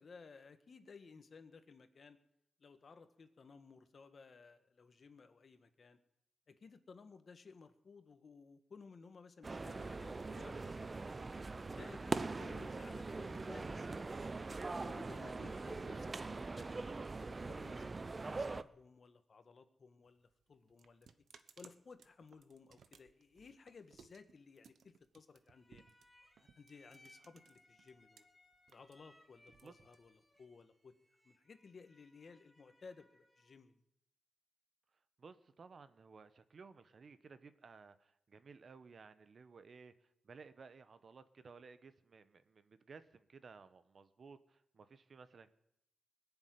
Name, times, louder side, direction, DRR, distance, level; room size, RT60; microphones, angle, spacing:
voice 1, 0.0-2.2 2.6-6.0 6.5-11.2 11.7-14.4 14.9-21.1 21.6-25.8 26.4-28.2 28.7-30.9 31.2-33.7, left 4 dB, 50° left, 9 dB, 1.5 m, -58 dB
sound 1, 9.4-18.6, right 3 dB, 30° right, 0.6 m, -42 dB
sound 2, 20.0-28.2 28.5-30.4, right 6 dB, 75° right, 1.1 m, -64 dB
sound 3, 25.5-33.6, left 1 dB, 10° left, 2.8 m, -68 dB
voice 2, 35.2-45.6, right 5 dB, 50° right, 12 dB, 1.1 m, -57 dB
20.5 x 7.2 x 9.5 m, 0.79 s
cardioid pair, 90°, 0 cm